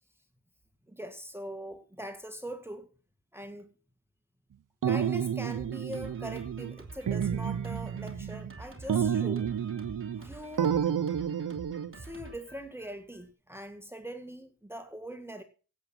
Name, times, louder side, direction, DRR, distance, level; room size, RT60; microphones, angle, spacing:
voice 1, 0.9-2.9 3.3-3.7 4.8-9.5 10.2-10.8 11.9-15.4, equal, 5° right, 1.9 m, -42 dB
sound 1, 4.8-6.8 7.1-8.5 8.9-10.3 10.6-11.9, right 8 dB, 55° right, 0.9 m, -30 dB
Drum kit, 5.5-13.3, right 3 dB, 30° right, 3.0 m, -49 dB
16.5 x 8.1 x 6.0 m
cardioid pair, 75°, 39 cm